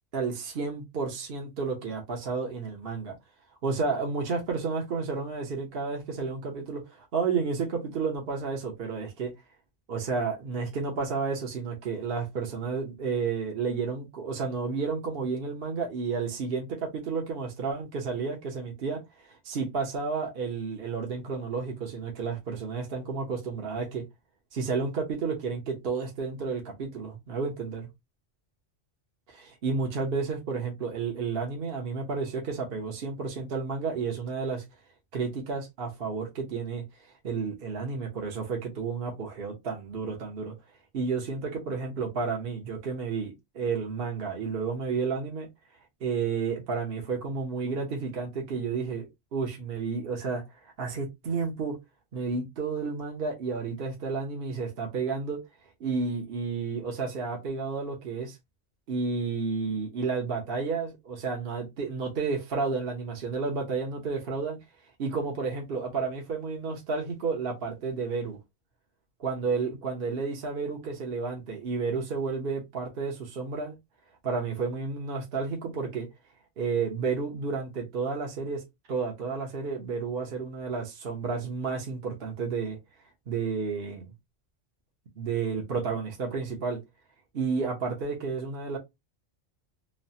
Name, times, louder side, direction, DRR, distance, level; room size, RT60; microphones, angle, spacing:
voice 1, 0.1-3.2 3.6-9.3 9.9-24.0 24.5-27.9 29.3-34.6 35.1-36.8 37.2-40.5 40.9-45.5 46.0-50.4 50.8-51.8 52.1-55.4 55.8-58.4 58.9-64.6 65.0-68.4 69.2-73.7 74.2-76.1 76.6-78.6 78.9-82.8 83.3-84.1 85.2-86.8 87.3-88.8, right 5 dB, 55° right, 0.9 m, -31 dB
3.1 x 2.1 x 2.6 m
omnidirectional pair, 1.2 m